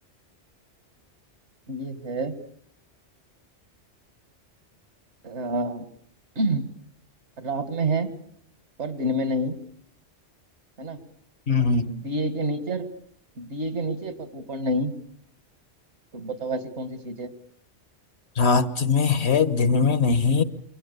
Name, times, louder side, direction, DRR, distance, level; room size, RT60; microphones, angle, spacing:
voice 1, 1.7-2.4 5.2-5.8 6.4-6.7 7.4-8.1 8.8-9.6 10.8-11.0 11.9-12.9 13.4-14.9 16.1-17.3, right 1 dB, 75° right, 2.3 m, -28 dB
voice 2, 11.5-11.9 18.4-20.4, left 5 dB, 65° left, 1.6 m, -21 dB
28.5 x 23.5 x 6.8 m
omnidirectional pair, 1.2 m